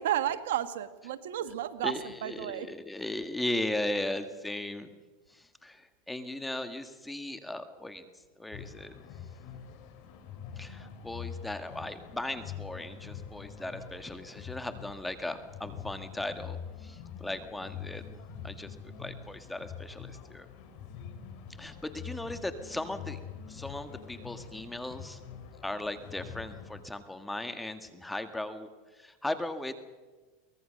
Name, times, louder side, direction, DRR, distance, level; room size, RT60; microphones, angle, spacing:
voice 1, 0.0-2.7, right 11 dB, 80° right, 11 dB, 1.5 m, -32 dB
voice 2, 1.8-4.9 5.6-5.8 6.1-8.0 8.4-8.9 10.6-16.6 16.8-18.2 18.4-20.5 21.6-23.2 23.5-25.2 25.6-28.7 29.0-29.7, left 1 dB, 5° left, 9 dB, 1.8 m, -37 dB
sound 1, 8.5-26.8, left 7 dB, 55° left, 3.7 m, -45 dB
23.5 x 18.5 x 6.6 m, 1.3 s
supercardioid pair, 120°, 0 cm